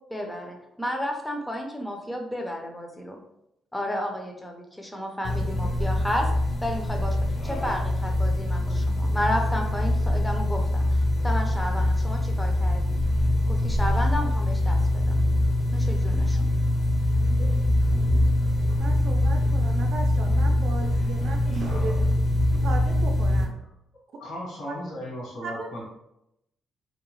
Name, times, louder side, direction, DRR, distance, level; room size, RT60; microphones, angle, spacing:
voice 1, 0.1-3.2 3.7-6.3 6.6-7.2 7.4-13.0 13.5-15.2 15.7-16.5, equal, 10° left, 2 dB, 0.5 m, -32 dB
sound 1, 5.2-23.4, left 1 dB, 40° left, 0.7 m, -23 dB
voice 2, 18.8-21.9 22.6-23.5 24.7-24.8 25.4-25.7, right 3 dB, 70° right, 3 dB, 0.5 m, -36 dB
voice 3, 24.2-25.8, equal, 65° left, -5 dB, 1.3 m, -36 dB
2.8 x 2.1 x 2.9 m, 0.83 s
cardioid pair, 90°, 0 cm